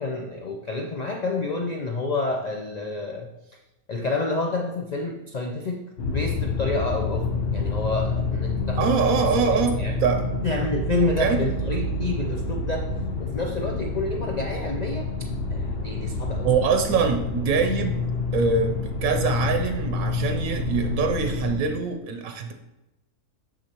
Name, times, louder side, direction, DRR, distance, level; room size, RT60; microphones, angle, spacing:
voice 1, 0.0-3.6 3.9-8.9 9.6-9.9 10.4-12.9 13.2-15.1 15.5-16.5, left 2 dB, 85° left, 2 dB, 0.3 m, -29 dB
sound 1, 6.0-21.6, left 3 dB, 50° left, 0.9 m, -28 dB
voice 2, 8.8-10.2 11.2-11.4 16.4-18.0 18.3-22.5, right 5 dB, 80° right, 6 dB, 1.1 m, -24 dB
6.4 x 6.2 x 2.9 m, 0.97 s
omnidirectional pair, 1.4 m